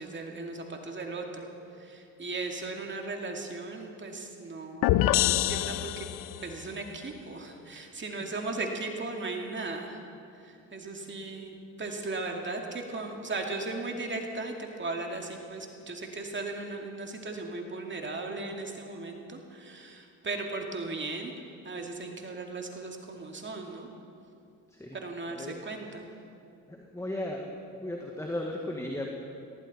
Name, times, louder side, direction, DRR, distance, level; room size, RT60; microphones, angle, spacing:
voice 1, 0.0-6.1 6.4-10.0 10.3-21.3 21.6-23.9 24.9-26.1, right 3 dB, 30° right, 2 dB, 2.3 m, -37 dB
sound 1, 4.8-6.5, left 14 dB, 65° left, 0.6 m, -25 dB
voice 2, 26.7-27.5 27.8-29.1, left 1 dB, 10° left, 0 dB, 1.7 m, -35 dB
18.5 x 16.5 x 4.3 m, 2.6 s
supercardioid pair, 70°, 37 cm